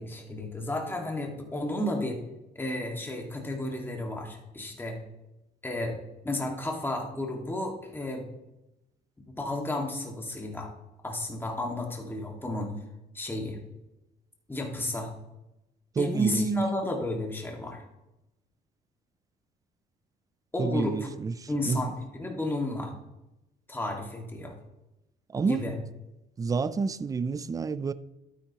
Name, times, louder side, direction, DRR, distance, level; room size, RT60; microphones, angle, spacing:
voice 1, 0.0-2.2 2.6-5.0 5.6-6.0 6.2-8.3 9.2-10.7 11.0-12.7 13.1-13.6 14.5-15.1 16.0-17.8 20.5-21.1 21.5-22.9 23.7-24.5 25.4-25.7, left 1 dB, 10° left, 1.9 m, -32 dB
voice 2, 16.0-16.5 20.6-21.9 25.3-25.7 26.4-27.9, right 4 dB, 20° right, 0.4 m, -29 dB
12.0 x 9.9 x 2.9 m
cardioid pair, 110°, 17 cm